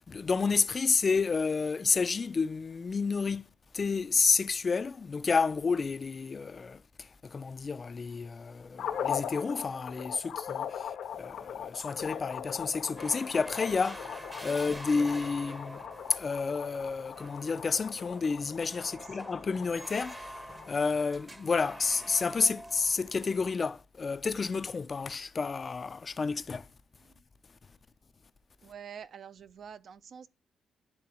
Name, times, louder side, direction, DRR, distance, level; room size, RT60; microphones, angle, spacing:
voice 1, 0.0-3.5 3.7-15.8 16.1-26.7, left 4 dB, 35° left, 0.3 m, -30 dB
sound 1, 8.8-21.0, left 8 dB, 75° left, 0.7 m, -40 dB
sound 2, 13.0-23.5, right 1 dB, 15° right, 0.7 m, -47 dB
voice 2, 28.6-30.3, right 7 dB, 55° right, 0.4 m, -47 dB
11.0 x 3.7 x 2.9 m
cardioid pair, 135°, 0 cm